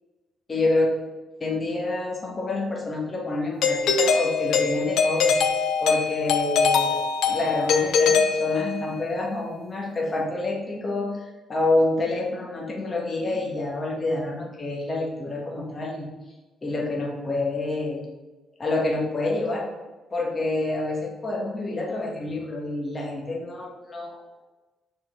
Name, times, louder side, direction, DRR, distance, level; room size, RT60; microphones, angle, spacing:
voice 1, 0.5-0.9 1.4-5.3 5.8-7.0 7.3-16.1 16.6-18.0 18.6-19.7 20.1-24.2, left 2 dB, 30° left, -1 dB, 1.5 m, -27 dB
Doorbell, 3.6-9.0, left 5 dB, 75° left, 0.6 m, -22 dB
6.0 x 4.4 x 4.4 m, 1.2 s
cardioid pair, 90°, 0 cm